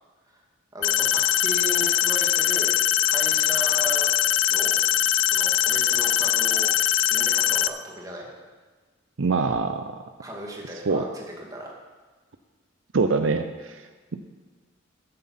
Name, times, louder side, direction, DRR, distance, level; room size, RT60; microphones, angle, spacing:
voice 1, 0.7-2.7 3.0-4.1 4.5-4.8 5.2-8.3 10.2-11.7, equal, 20° right, -1 dB, 2.2 m, -36 dB
sound 1, 0.8-7.7, left 12 dB, 70° left, 0.5 m, -22 dB
voice 2, 9.2-9.9 10.8-11.1 12.9-13.9 14.1-14.2, right 4 dB, 70° right, 8 dB, 0.6 m, -24 dB
13.5 x 7.6 x 5.7 m, 1.4 s
head